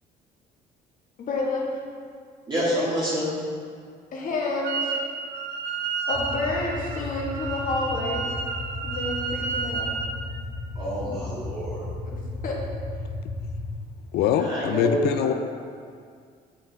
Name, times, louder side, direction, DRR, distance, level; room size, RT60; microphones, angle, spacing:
voice 1, 1.2-1.8 4.1-4.9 6.1-8.2 8.8-9.9 12.4-12.6, left 2 dB, 55° left, -3 dB, 1.5 m, -29 dB
voice 2, 2.5-3.3 10.7-11.9 14.4-15.3, equal, 25° right, -10 dB, 1.8 m, -27 dB
Wind instrument woodwind instrument, 4.6-5.1 5.3-10.1, right 5 dB, 85° right, 0.6 m, -31 dB
sound 1, 6.1-13.7, left 2 dB, 5° left, 1.8 m, -35 dB
voice 3, 14.1-15.3, left 9 dB, 75° left, 7 dB, 0.4 m, -23 dB
7.2 x 5.7 x 3.4 m, 2.1 s
cardioid pair, 110°, 17 cm